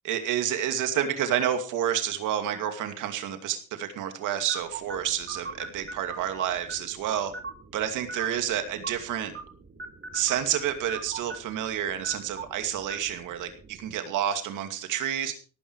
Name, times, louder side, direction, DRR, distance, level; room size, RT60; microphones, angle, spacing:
voice 1, 0.0-7.3 7.7-9.3 10.1-15.4, right 10 dB, 90° right, 7 dB, 2.5 m, -29 dB
sound 1, 4.5-14.0, right 3 dB, 40° right, 3.2 m, -42 dB
17.5 x 9.3 x 4.8 m, 0.37 s
cardioid pair, 90°, 30 cm